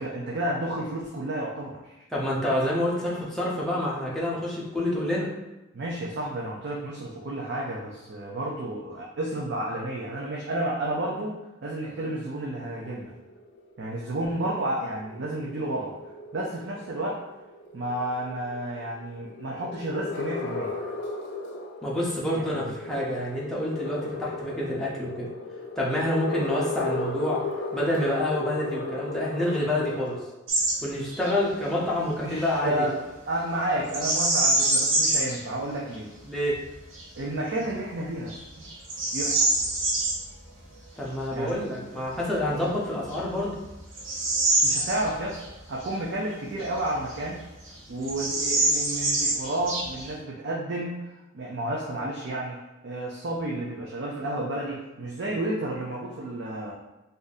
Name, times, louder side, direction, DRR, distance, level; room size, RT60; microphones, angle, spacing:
voice 1, 0.0-1.9 5.7-13.1 13.8-15.9 16.3-17.2 17.7-20.7 22.5-22.7 32.2-36.1 37.2-38.4 39.1-39.4 41.3-41.6 44.6-45.4 45.7-47.4 47.9-51.0 51.3-56.7, right 1 dB, 60° right, -3 dB, 0.5 m, -31 dB
voice 2, 2.1-5.3 21.8-25.3 25.8-27.4 27.7-30.2 30.8-32.9 36.2-36.6 41.0-43.6, left 1 dB, ahead, -6 dB, 0.7 m, -28 dB
sound 1, 12.8-30.2, left 3 dB, 65° left, 0.6 m, -36 dB
Bird vocalization bird call bird song, 30.5-30.8 31.1-31.3 33.9-35.4 35.9-36.0 36.6-37.0 37.6-37.7 38.3-40.2 42.3-42.4 43.0-45.5 45.8-45.9 46.6-47.4 47.6-47.7 48.0-50.2, right 2 dB, 80° right, 0.9 m, -25 dB
2.6 x 2.5 x 4.0 m, 1.0 s
head